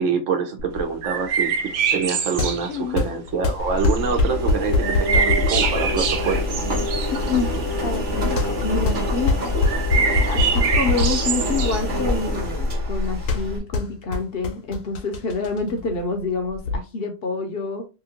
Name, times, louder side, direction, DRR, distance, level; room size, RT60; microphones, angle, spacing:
voice 1, 0.0-1.5 1.9-6.4, right 5 dB, 80° right, 5 dB, 1.0 m, -25 dB
sound 1, 0.6-16.8, left 3 dB, 90° left, 1.0 m, -26 dB
sound 2, 1.0-2.7 3.8-4.3 4.8-7.9 8.7-8.8 9.1-9.2 9.5-11.8, right 6 dB, 60° right, 0.6 m, -25 dB
voice 2, 2.7-3.0 7.3-7.5 7.8-9.4 10.0-17.9, left 3 dB, 60° left, 4 dB, 0.7 m, -27 dB
Engine, 3.6-13.6, left 1 dB, 45° right, 0.9 m, -26 dB
2.8 x 2.5 x 2.7 m, 0.29 s
omnidirectional pair, 1.3 m